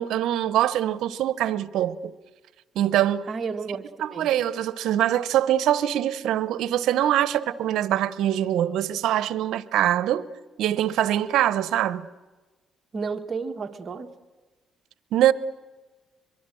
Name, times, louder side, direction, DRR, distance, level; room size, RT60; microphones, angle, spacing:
voice 1, 0.0-2.1 2.7-3.3 4.0-10.3 10.6-12.1 15.1-15.3, right 12 dB, 85° right, 0.9 m, -23 dB
voice 2, 3.3-4.3 12.9-14.1, right 5 dB, 40° right, 1.9 m, -32 dB
23.5 x 23.5 x 7.8 m
cardioid pair, 90°, 0 cm